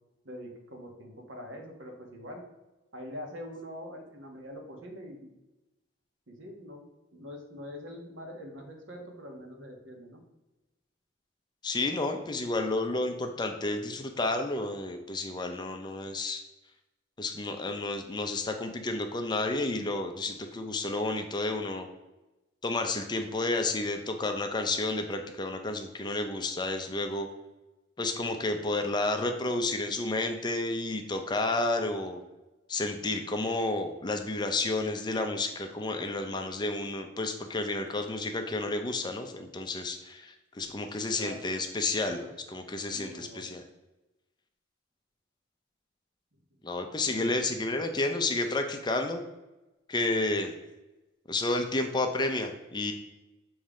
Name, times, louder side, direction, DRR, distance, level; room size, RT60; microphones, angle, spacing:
voice 1, 0.2-2.4 2.9-5.3 6.3-6.8 7.1-10.2 41.2-41.4 42.0-42.3 42.9-43.4 47.1-47.3, equal, 70° right, 2 dB, 1.3 m, -44 dB
voice 2, 11.6-16.4 17.2-21.9 22.6-27.3 28.0-32.2 32.7-42.2 42.5-43.6 46.6-49.2 49.9-50.5 51.3-52.9, left 2 dB, 20° left, 5 dB, 0.5 m, -31 dB
7.1 x 3.1 x 4.9 m, 1.0 s
head